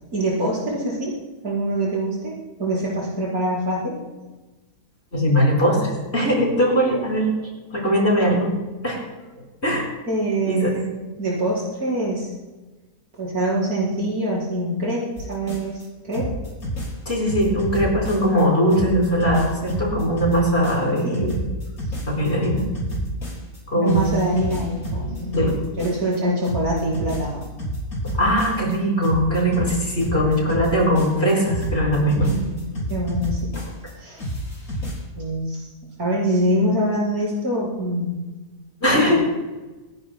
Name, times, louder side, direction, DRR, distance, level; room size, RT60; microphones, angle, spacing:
voice 1, 0.1-1.1 1.4-4.0 10.1-10.9 11.2-12.3 13.2-15.0 15.3-16.3 21.0-21.4 23.7-27.4 32.1-33.5 34.0-34.2 35.2-35.7 36.0-38.1 39.1-39.2, right 1 dB, 65° right, -6 dB, 5.2 m, -24 dB
voice 2, 5.1-7.3 7.7-8.5 8.8-9.0 9.6-9.9 10.5-10.7 17.0-21.5 22.1-22.6 23.7-24.2 25.3-25.5 28.1-32.3 38.8-39.2, equal, 40° left, -3 dB, 4.8 m, -20 dB
sound 1, 15.2-15.8 16.1-18.4 18.7-23.6 23.9-26.2 26.4-28.8 29.0-33.9 34.2-35.0, equal, 55° left, 4.2 m, -29 dB
28.5 x 10.5 x 2.2 m, 1.2 s
omnidirectional pair, 1.7 m